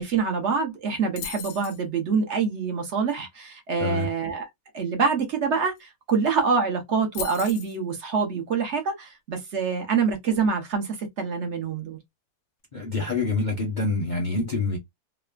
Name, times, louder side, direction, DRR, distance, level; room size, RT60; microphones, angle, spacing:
voice 1, 0.0-4.5 4.7-12.0, right 5 dB, 55° right, 0.9 m, -26 dB
sound 1, 1.2-1.8 5.8-5.9 6.1-6.4 7.1-7.8, left 9 dB, 90° left, 1.2 m, -36 dB
voice 2, 12.7-14.8, left 3 dB, 40° left, 0.7 m, -26 dB
3.2 x 2.0 x 2.2 m
omnidirectional pair, 1.8 m